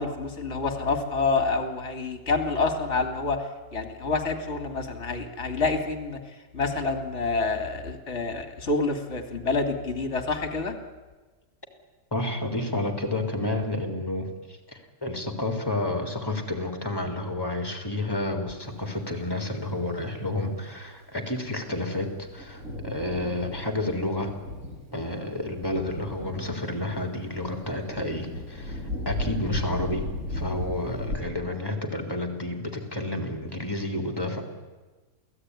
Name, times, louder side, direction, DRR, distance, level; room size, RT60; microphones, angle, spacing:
voice 1, 0.0-3.5 3.7-6.2 6.5-10.8, left 3 dB, 45° left, 6 dB, 2.9 m, -27 dB
voice 2, 12.1-24.3 24.9-30.0 30.3-34.4, left 1 dB, 15° left, 5 dB, 3.7 m, -30 dB
Thunder, 21.4-31.2, left 1 dB, 55° right, 3.9 m, -36 dB
28.5 x 17.5 x 9.8 m, 1.3 s
omnidirectional pair, 1.7 m